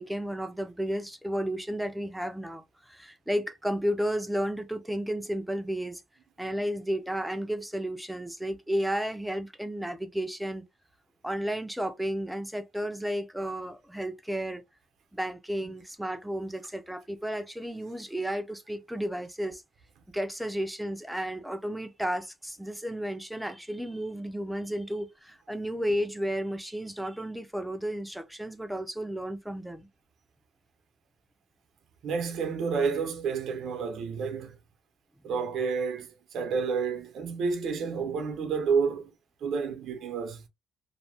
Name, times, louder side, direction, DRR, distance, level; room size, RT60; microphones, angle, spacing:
voice 1, 0.0-6.0 6.4-10.6 11.2-14.6 15.1-19.6 20.1-29.9, equal, 5° right, 0.6 m, -33 dB
voice 2, 32.0-34.6 35.2-39.1 39.4-40.4, right 5 dB, 70° right, 0.8 m, -30 dB
2.7 x 2.2 x 3.4 m
cardioid pair, 90°, 0 cm